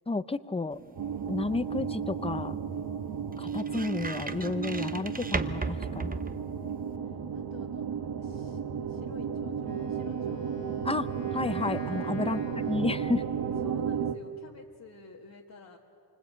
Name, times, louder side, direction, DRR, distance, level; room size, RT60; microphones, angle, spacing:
voice 1, 0.1-0.8 1.3-2.5 3.4-6.2 10.8-11.1 11.3-12.4 12.7-13.2 13.6-13.7, left 3 dB, 15° left, 14 dB, 0.6 m, -31 dB
sound 1, 0.7-7.0, right 3 dB, 20° right, 0.8 m, -38 dB
sound 2, 1.0-14.2, right 7 dB, 65° right, 1.1 m, -34 dB
voice 2, 6.6-7.9 8.2-10.6 12.2-12.6 13.6-15.8, left 5 dB, 50° left, -2 dB, 1.7 m, -51 dB
Wind instrument woodwind instrument, 9.6-13.7, left 9 dB, 80° left, 1.1 m, -48 dB
27.5 x 25.0 x 8.5 m, 2.7 s
wide cardioid pair, 175°, 43 cm